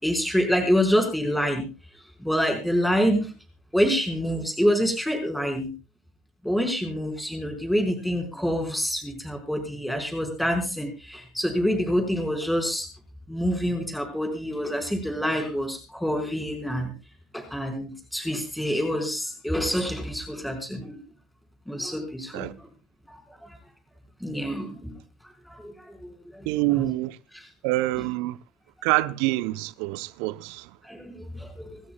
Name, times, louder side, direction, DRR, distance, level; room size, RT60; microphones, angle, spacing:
voice 1, 0.0-1.7 2.2-3.3 3.7-5.7 6.4-12.9 13.3-16.9 17.3-21.0 21.7-22.5 23.1-23.2 24.2-25.0 25.5-26.8 30.8-31.8, equal, 5° left, 4.7 m, -27 dB
voice 2, 26.5-27.2 27.6-28.4 28.8-30.7, right 19 dB, 65° right, 0.7 m, -26 dB
28.0 x 13.5 x 2.3 m
figure-of-eight pair, 60°, 0 cm